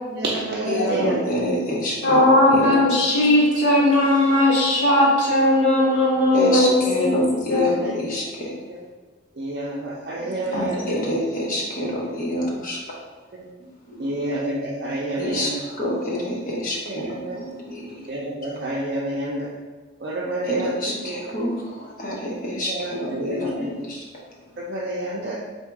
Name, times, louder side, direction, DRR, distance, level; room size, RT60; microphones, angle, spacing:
voice 1, 0.0-1.2 2.4-2.5 7.7-7.9 8.7-8.8 9.4-11.0 13.3-13.5 14.0-15.6 16.9-17.4 17.9-19.5 20.0-21.2 22.3-23.7 24.6-25.4, right 2 dB, 55° right, -5 dB, 0.5 m, -29 dB
voice 2, 0.7-2.8 3.2-3.4 6.3-8.5 10.2-12.8 13.9-14.2 15.2-18.0 20.5-24.0, left 1 dB, 45° left, -3 dB, 0.9 m, -27 dB
voice 3, 2.0-7.1 7.5-7.6, left 1 dB, 80° left, -5 dB, 1.4 m, -18 dB
3.6 x 2.7 x 4.7 m, 1.4 s
head